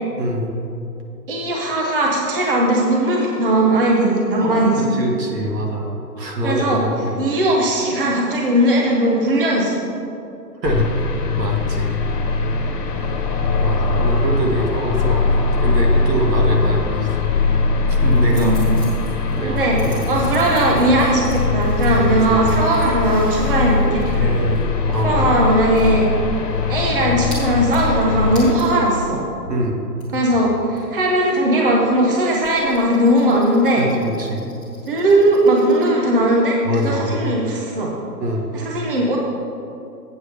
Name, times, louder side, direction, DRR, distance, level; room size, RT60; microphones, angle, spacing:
voice 1, 0.2-0.5 4.4-7.3 10.6-11.0 11.4-11.9 13.0-13.1 13.6-17.2 17.9-18.5 19.3-20.4 22.1-22.4 24.9-25.3 29.5-29.8 33.8-34.4 36.6-37.1 38.2-38.5, right 1 dB, 70° right, 0 dB, 1.9 m, -24 dB
voice 2, 1.3-4.9 6.4-6.8 7.2-9.8 18.4-18.6 19.4-24.0 24.9-26.1 26.7-29.2 30.1-33.8 34.9-37.9 38.5-39.2, right 1 dB, 35° right, -2 dB, 0.8 m, -18 dB
sound 1, 10.6-28.5, left 3 dB, 65° left, 1.3 m, -20 dB
sound 2, 18.0-28.8 29.2-29.3 29.5-35.8, equal, 15° right, 1.4 m, -37 dB
8.2 x 6.9 x 5.0 m, 2.7 s
hypercardioid pair, 170°, 50 cm